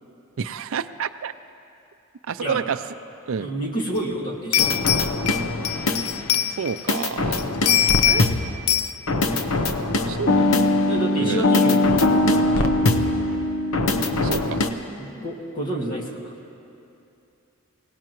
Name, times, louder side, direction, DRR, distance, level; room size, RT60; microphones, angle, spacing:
voice 1, 0.4-1.3 2.3-2.8 3.3-3.5 6.5-7.5 8.0-8.2 9.3-9.4 10.1-10.5 11.2-11.5 14.2-14.6, right 6 dB, 65° right, 12 dB, 0.4 m, -29 dB
voice 2, 3.4-5.1 10.3-10.6 10.9-11.8 12.5-12.8 15.0-16.3, right 1 dB, 40° left, -2 dB, 2.1 m, -29 dB
sound 1, 4.0-4.1 4.5-7.0 7.4-8.4 8.7-8.9, left 11 dB, 90° left, 0.4 m, -22 dB
sound 2, 4.6-6.4 6.9-8.6 9.1-14.7, left 2 dB, 70° left, 0.9 m, -21 dB
24.5 x 18.0 x 3.1 m, 2.7 s
head